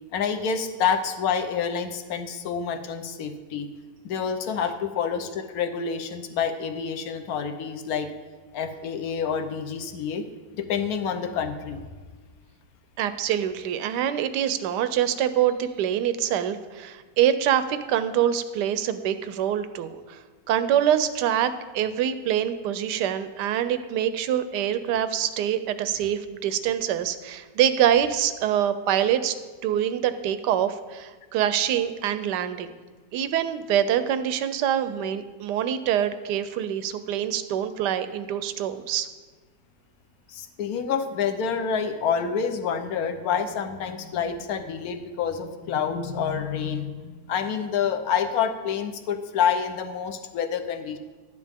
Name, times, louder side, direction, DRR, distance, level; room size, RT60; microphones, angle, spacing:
voice 1, 0.1-3.7 4.0-8.1 8.5-10.3 10.5-11.8 40.3-51.0, left 7 dB, 60° left, 7 dB, 1.1 m, -28 dB
voice 2, 13.0-20.2 20.5-29.3 29.6-32.8 33.1-39.1, right 10 dB, 75° right, 11 dB, 1.2 m, -25 dB
12.5 x 9.5 x 3.5 m, 1.3 s
omnidirectional pair, 2.0 m